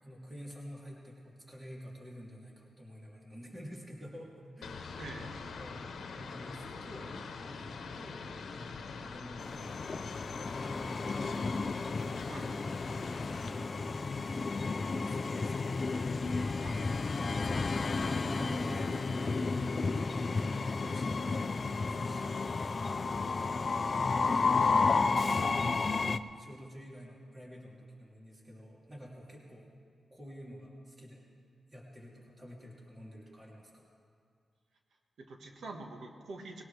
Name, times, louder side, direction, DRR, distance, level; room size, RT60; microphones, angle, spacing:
voice 1, 0.0-4.9 5.6-5.8 6.2-9.7 9.9-11.2 11.9-12.2 12.4-16.7 17.3-22.5 22.9-23.3 24.0-25.0 26.2-29.7 30.1-31.3 31.7-33.9, equal, 20° right, -4 dB, 3.1 m, -49 dB
sound 1, 4.6-13.5, left 4 dB, 85° left, 1.0 m, -44 dB
voice 2, 5.0-5.3 12.3-12.5 16.6-16.8 35.2-36.6, right 3 dB, 80° right, 3 dB, 1.6 m, -45 dB
Train, 9.4-26.2, left 4 dB, 45° left, 0.5 m, -32 dB
20.0 x 18.0 x 3.5 m, 2.2 s
cardioid pair, 90°, 0 cm